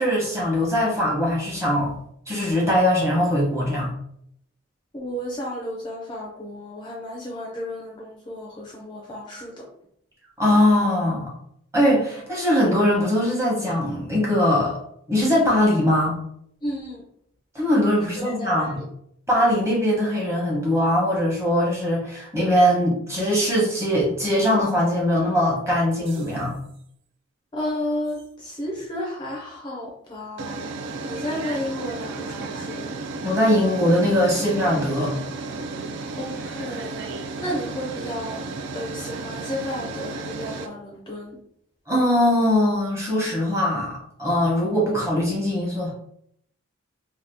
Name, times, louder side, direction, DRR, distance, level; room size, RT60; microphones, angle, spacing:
voice 1, 0.0-1.9 2.3-3.9 10.4-11.3 11.7-14.8 15.1-16.2 17.5-18.8 19.3-26.6 33.2-35.1 41.9-45.9, left 1 dB, 15° right, -4 dB, 1.0 m, -21 dB
voice 2, 4.9-9.7 16.6-17.0 18.2-18.7 27.5-30.7 31.1-32.9 36.2-38.5 38.7-41.4, left 1 dB, 20° left, -2 dB, 0.5 m, -32 dB
sound 1, 26.0-26.5 28.2-28.3 30.4-40.7, right 3 dB, 60° right, 0.3 m, -33 dB
2.7 x 2.3 x 3.4 m, 0.70 s
head